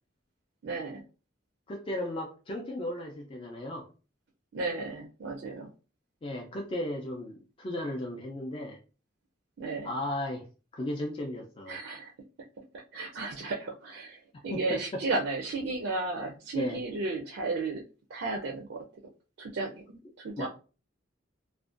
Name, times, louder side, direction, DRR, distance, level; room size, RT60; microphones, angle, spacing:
voice 1, 0.6-1.0 4.5-5.7 9.6-9.9 11.7-12.1 12.6-12.7 12.9-17.8 18.1-18.8 19.4-20.5, right 3 dB, 70° right, 0 dB, 0.4 m, -34 dB
voice 2, 1.7-3.9 6.2-8.8 9.8-10.4 10.7-11.8 14.5-14.8 16.5-16.8 20.4-20.5, left 1 dB, 30° left, 0 dB, 0.4 m, -35 dB
2.5 x 2.1 x 2.4 m, 0.34 s
head